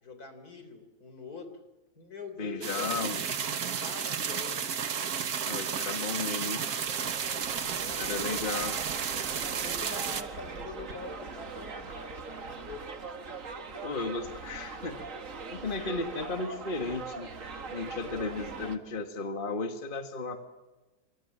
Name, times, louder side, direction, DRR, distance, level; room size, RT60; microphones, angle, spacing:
voice 1, 0.0-1.6 2.0-3.3 3.8-4.7 7.7-8.4 9.4-12.9, left 4 dB, 75° left, 8 dB, 4.1 m, -45 dB
voice 2, 2.4-3.2 5.4-6.6 8.0-8.8 13.8-15.0 15.5-17.3 17.7-20.4, left 4 dB, 35° left, 6 dB, 1.8 m, -34 dB
sound 1, 2.6-10.2, right 7 dB, 75° right, 1.8 m, -32 dB
sound 2, 6.8-18.8, right 4 dB, 60° right, 2.1 m, -41 dB
25.5 x 24.5 x 7.4 m, 1.1 s
omnidirectional pair, 1.6 m